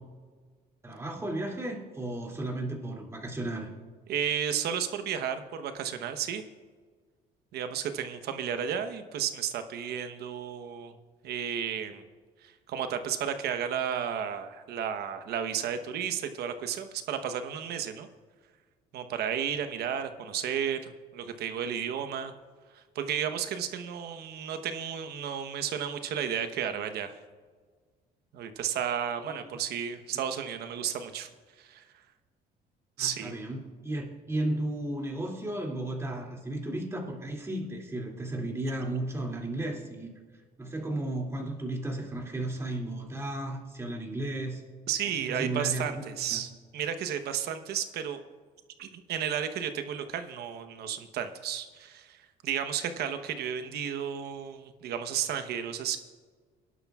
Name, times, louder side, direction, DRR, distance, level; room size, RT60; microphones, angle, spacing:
voice 1, 0.8-3.7 29.2-29.4 33.0-40.1 40.6-44.6 45.3-45.9 46.3-46.4, right 1 dB, 15° right, -1 dB, 2.5 m, -34 dB
voice 2, 4.1-6.4 7.5-10.9 11.2-12.0 12.4-18.1 18.9-22.3 22.7-27.2 28.3-31.3 31.6-31.8 33.0-33.3 44.9-48.2 48.8-56.0, right 8 dB, 75° right, 8 dB, 1.0 m, -33 dB
23.5 x 11.0 x 2.4 m, 1.5 s
cardioid pair, 110°, 17 cm